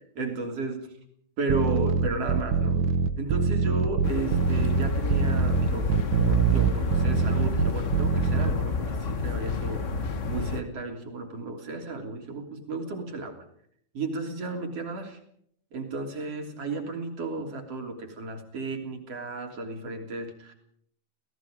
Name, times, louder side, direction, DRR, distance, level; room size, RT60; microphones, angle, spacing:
voice 1, 0.2-0.9 1.4-5.9 6.3-13.4 13.9-15.2 15.7-20.5, right 3 dB, 55° right, 3 dB, 4.3 m, -34 dB
sound 1, 1.5-8.5, right 6 dB, 85° right, 2.6 m, -24 dB
sound 2, 4.0-10.6, left 4 dB, 70° left, 0.7 m, -30 dB
30.0 x 18.0 x 5.1 m, 0.68 s
omnidirectional pair, 3.3 m